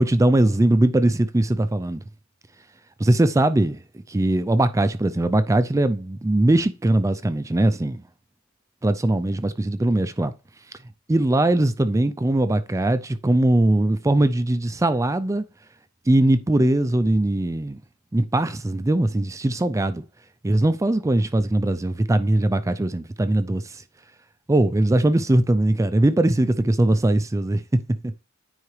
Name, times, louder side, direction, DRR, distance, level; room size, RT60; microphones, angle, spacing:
voice 1, 0.0-2.0 3.0-3.8 4.1-8.0 8.8-10.3 11.1-15.4 16.1-17.8 18.1-20.0 20.4-23.8 24.5-28.2, right 1 dB, 15° right, 0.4 m, -20 dB
9.6 x 4.8 x 3.2 m
head